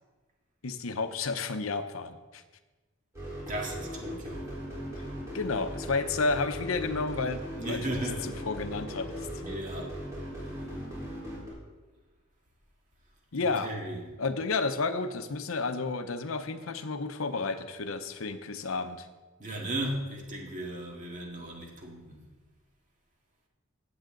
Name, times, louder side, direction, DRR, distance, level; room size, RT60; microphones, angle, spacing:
voice 1, 0.6-2.4 5.0-5.1 5.3-7.9 8.2-9.4 13.3-13.7 14.2-19.1, left 3 dB, 85° left, 10 dB, 0.8 m, -31 dB
sound 1, 3.1-11.5, equal, 15° right, 3.9 m, -38 dB
voice 2, 3.5-4.5 7.5-8.4 9.4-10.0 13.4-14.0 19.4-22.2, right 1 dB, 40° right, 0 dB, 2.0 m, -36 dB
15.5 x 8.0 x 3.9 m, 1.3 s
head